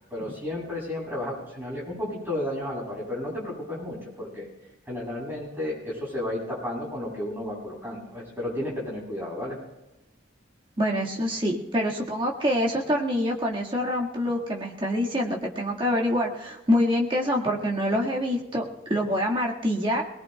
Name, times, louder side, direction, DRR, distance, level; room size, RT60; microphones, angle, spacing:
voice 1, 0.1-4.5 4.9-9.6, left 1 dB, 10° right, -5 dB, 7.1 m, -32 dB
voice 2, 10.8-20.0, equal, 25° right, -2 dB, 1.8 m, -26 dB
22.5 x 20.5 x 2.3 m, 1.0 s
head